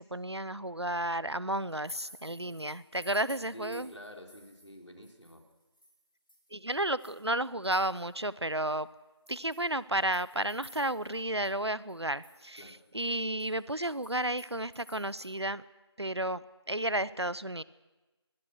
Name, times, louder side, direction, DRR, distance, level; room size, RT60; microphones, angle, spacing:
voice 1, 0.0-3.9 6.5-8.9 9.3-15.6 16.0-16.4 16.7-17.6, right 1 dB, 70° right, 19 dB, 0.9 m, -32 dB
sound 1, 1.7-4.8 5.0-8.2 8.7-8.8 9.3-11.2 11.4-11.5 11.9-15.3, left 2 dB, 50° left, 6.2 m, -52 dB
voice 2, 3.5-5.4 12.6-12.8, right 1 dB, 90° left, 2 dB, 4.5 m, -47 dB
23.5 x 20.0 x 6.3 m, 1.1 s
figure-of-eight pair, 180°, 15 cm